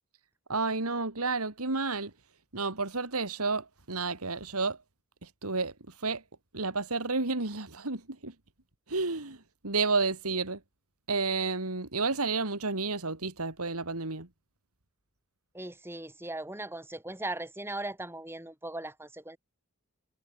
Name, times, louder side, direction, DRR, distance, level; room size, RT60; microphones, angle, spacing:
voice 1, 0.5-2.1 2.5-4.8 5.4-5.7 6.0-6.2 6.5-8.3 8.9-9.4 9.6-10.6 11.1-14.3, right 3 dB, 85° right, 2.8 m, -31 dB
voice 2, 15.5-19.4, right 2 dB, 10° right, 6.8 m, -38 dB
head